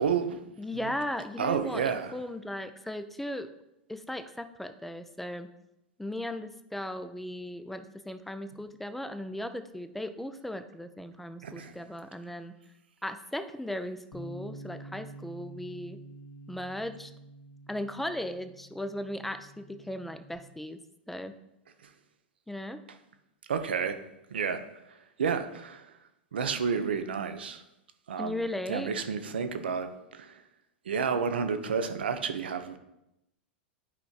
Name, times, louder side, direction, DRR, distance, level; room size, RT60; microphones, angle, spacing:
voice 1, 0.0-0.4 1.4-2.1 11.4-11.8 23.5-24.0 24.3-24.6 24.9-25.9 26.3-27.6 28.1-28.4 28.7-30.4 30.9-32.8, right 6 dB, 70° right, 8 dB, 0.7 m, -30 dB
voice 2, 0.6-3.5 3.9-5.5 6.0-12.5 13.0-16.0 16.5-17.1 17.7-20.8 21.1-21.4 22.5-22.8 28.2-28.9, left 1 dB, 5° left, 10 dB, 0.4 m, -37 dB
Bass guitar, 14.1-20.4, right 1 dB, 75° left, 1.9 m, -48 dB
11.5 x 5.2 x 2.4 m, 0.87 s
figure-of-eight pair, 95°, 6 cm